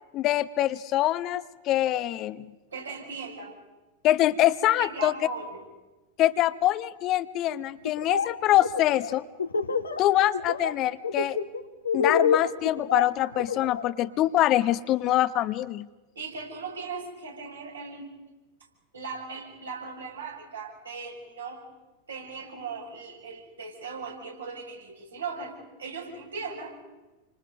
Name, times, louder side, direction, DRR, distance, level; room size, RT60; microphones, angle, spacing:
voice 1, 0.1-2.5 4.0-5.1 6.2-9.2 10.0-11.4 11.9-15.9, left 14 dB, 40° left, 14 dB, 0.8 m, -24 dB
voice 2, 2.7-3.6 4.8-5.6 16.1-18.1 18.9-21.6 22.1-26.8, right 4 dB, 75° right, -1 dB, 6.5 m, -38 dB
Laughter, 7.8-8.3 8.6-10.0 10.3-10.7 11.0-13.9, left 5 dB, 80° left, 1.4 m, -27 dB
29.5 x 25.5 x 5.3 m, 1.2 s
figure-of-eight pair, 90°, 0 cm